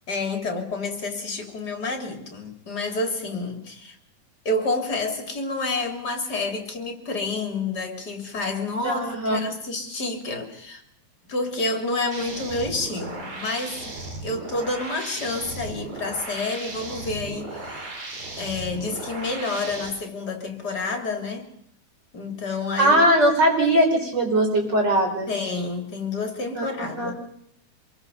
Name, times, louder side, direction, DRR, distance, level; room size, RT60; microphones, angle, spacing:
voice 1, 0.1-4.0 4.5-10.8 11.3-18.0 18.4-21.5 22.1-23.1 25.3-27.2, left 3 dB, 30° left, 3.6 m, -29 dB
voice 2, 8.8-9.4 22.8-25.3 26.6-26.7 27.0-27.1, right 1 dB, 35° right, 5.5 m, -20 dB
sound 1, 12.1-19.9, right 2 dB, 65° right, 5.8 m, -36 dB
25.5 x 23.0 x 5.5 m
omnidirectional pair, 3.4 m